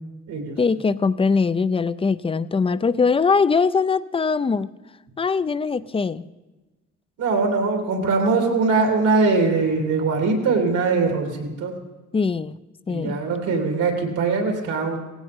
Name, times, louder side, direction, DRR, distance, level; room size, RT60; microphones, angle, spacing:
voice 1, 0.6-4.7 5.2-6.2 12.1-12.6 12.9-13.2, left 5 dB, 20° left, 16 dB, 0.4 m, -21 dB
voice 2, 7.2-11.7 12.9-15.0, right 4 dB, 80° right, 2 dB, 3.2 m, -21 dB
18.0 x 16.0 x 3.6 m, 1.2 s
cardioid pair, 90°, 30 cm